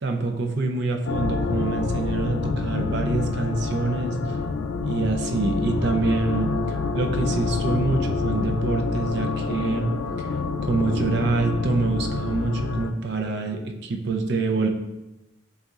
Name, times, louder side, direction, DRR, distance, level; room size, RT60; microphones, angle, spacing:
voice 1, 0.0-4.4 4.8-10.3 10.6-14.7, right 3 dB, 60° right, 4 dB, 0.5 m, -26 dB
sound 1, 1.1-12.9, left 4 dB, 75° left, 0.3 m, -27 dB
8.0 x 2.8 x 2.4 m, 0.98 s
head